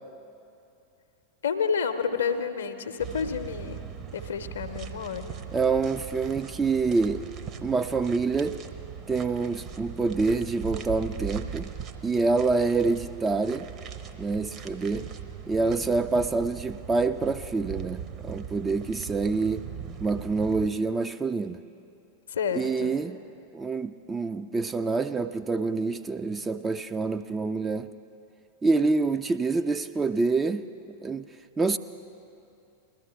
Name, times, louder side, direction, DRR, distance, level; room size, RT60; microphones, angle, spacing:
voice 1, 1.4-3.8 4.1-5.4 22.3-23.0, left 6 dB, 65° left, 9 dB, 0.7 m, -30 dB
sound 1, 3.0-20.7, right 7 dB, 35° right, 0.7 m, -39 dB
voice 2, 5.5-7.3 7.6-8.6 9.1-11.7 12.0-13.7 14.2-15.1 15.5-19.6 20.0-21.6 22.5-23.2 23.5-27.9 28.6-30.7 31.0-31.3 31.6-31.8, right 4 dB, 15° right, 8 dB, 0.3 m, -26 dB
20.5 x 13.0 x 3.4 m, 2.7 s
figure-of-eight pair, 90°, 0 cm